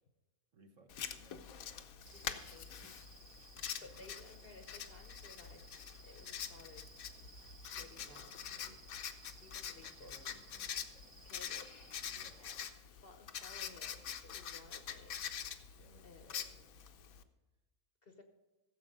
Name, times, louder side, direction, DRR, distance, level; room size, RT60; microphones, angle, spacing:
voice 1, 0.5-3.0 3.6-4.1 7.8-8.9 9.8-11.2 12.1-12.6 15.7-16.9, right 3 dB, 55° right, 5 dB, 1.5 m, -64 dB
Writing, 0.9-17.2, left 8 dB, 70° left, 1.2 m, -46 dB
sound 1, 2.0-12.4, right 4 dB, 80° right, 1.8 m, -60 dB
voice 2, 2.1-2.7 3.8-5.6 6.0-6.8 7.7-8.4 9.3-10.2 11.2-11.7 12.4-15.2 16.0-16.4 18.0-18.2, left 3 dB, 45° left, 6 dB, 1.0 m, -57 dB
15.5 x 7.3 x 5.3 m, 1.1 s
omnidirectional pair, 1.6 m